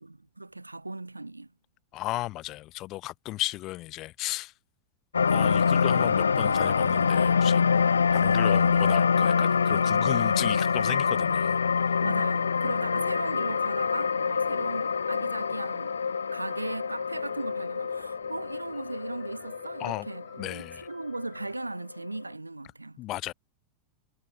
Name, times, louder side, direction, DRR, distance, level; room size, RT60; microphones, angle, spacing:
voice 1, 0.0-1.5 12.0-16.0 16.3-23.0, right 2 dB, 85° right, 0.8 m, -37 dB
voice 2, 1.9-4.5 5.3-11.6 19.8-20.1 20.4-20.9 23.0-23.3, left 17 dB, 35° left, 0.9 m, -34 dB
sound 1, 5.1-21.6 22.1-22.2, left 6 dB, 75° left, 0.3 m, -25 dB
Piano, 12.8-21.5, left 6 dB, 20° left, 3.3 m, -56 dB
figure-of-eight pair, 90°, 0 cm